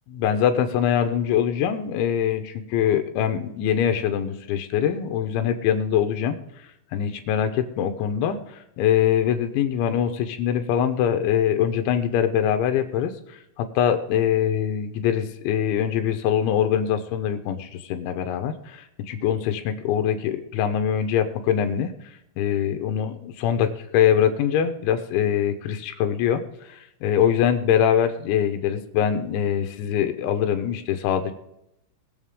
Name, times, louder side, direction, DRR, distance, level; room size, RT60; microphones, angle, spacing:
voice 1, 0.1-6.4 6.9-21.9 22.4-31.3, left 9 dB, 80° left, 7 dB, 3.2 m, -23 dB
21.0 x 7.4 x 3.6 m, 0.85 s
omnidirectional pair, 5.6 m